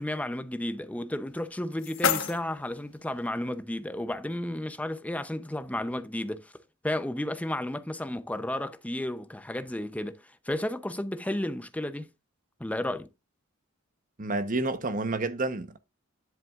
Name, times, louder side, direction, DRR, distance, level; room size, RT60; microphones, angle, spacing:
voice 1, 0.0-6.5 6.8-12.1 12.6-13.1, left 1 dB, 5° left, 0.6 m, -33 dB
sound 1, 1.3-3.3, left 7 dB, 65° left, 1.2 m, -32 dB
voice 2, 14.2-15.8, right 2 dB, 40° right, 1.0 m, -29 dB
10.5 x 7.6 x 2.4 m
head